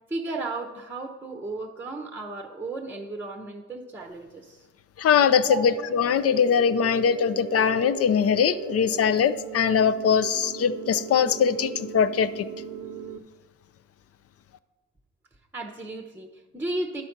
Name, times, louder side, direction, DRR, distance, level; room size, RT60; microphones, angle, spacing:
voice 1, 0.1-4.7 5.4-5.6 15.5-17.0, right 2 dB, 5° right, 2 dB, 0.8 m, -34 dB
voice 2, 5.0-12.5, left 7 dB, 50° left, 14 dB, 0.5 m, -22 dB
sound 1, 5.2-13.2, right 9 dB, 85° right, 0.7 m, -37 dB
11.0 x 4.2 x 5.9 m, 1.2 s
cardioid pair, 90°, 30 cm